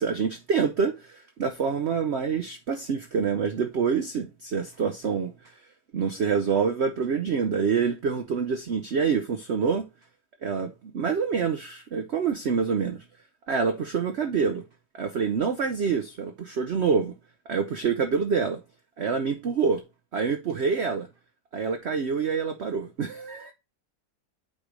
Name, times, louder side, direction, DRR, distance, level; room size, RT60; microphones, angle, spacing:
voice 1, 0.0-5.3 5.9-9.9 10.4-13.0 13.5-14.6 15.0-17.1 17.5-18.6 19.0-19.8 20.1-21.1 21.5-23.5, right 6 dB, 65° right, 0.6 m, -26 dB
8.9 x 3.2 x 5.0 m
omnidirectional pair, 1.9 m